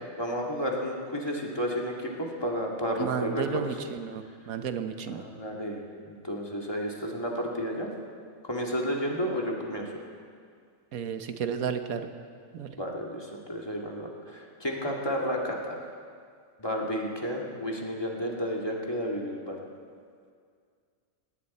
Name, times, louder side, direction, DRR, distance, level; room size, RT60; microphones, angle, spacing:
voice 1, 0.2-3.6 5.1-7.9 8.4-9.9 12.8-15.9 16.6-19.6, equal, 20° left, -1 dB, 2.0 m, -32 dB
voice 2, 3.0-5.2 10.9-12.1 12.5-12.7, right 7 dB, 90° right, 8 dB, 1.4 m, -32 dB
18.0 x 17.5 x 4.2 m, 2.1 s
omnidirectional pair, 1.4 m